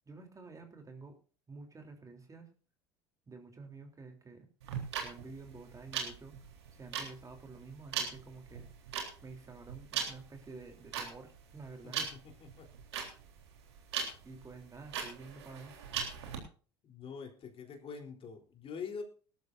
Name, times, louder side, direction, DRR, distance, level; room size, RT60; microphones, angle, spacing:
voice 1, 0.1-1.2 1.5-2.5 3.3-4.5 5.0-6.3 6.7-8.7 9.2-12.0 14.2-15.7, right 4 dB, 25° right, 4 dB, 3.3 m, -50 dB
sound 1, 4.6-16.4, right 7 dB, 80° right, 3.6 m, -39 dB
voice 2, 11.8-12.7 16.8-19.0, left 6 dB, 40° left, 3 dB, 3.6 m, -45 dB
19.5 x 12.5 x 2.6 m, 0.38 s
hypercardioid pair, 75°, 14 cm